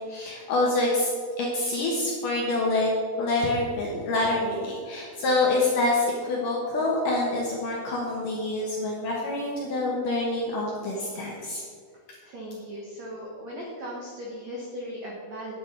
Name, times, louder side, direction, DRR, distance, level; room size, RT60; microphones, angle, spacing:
voice 1, 0.1-1.1 1.4-2.9 3.2-11.6, left 2 dB, 70° left, -3 dB, 2.1 m, -26 dB
voice 2, 12.2-15.5, equal, 75° right, -3 dB, 1.6 m, -38 dB
9.3 x 9.3 x 4.6 m, 2.1 s
omnidirectional pair, 5.3 m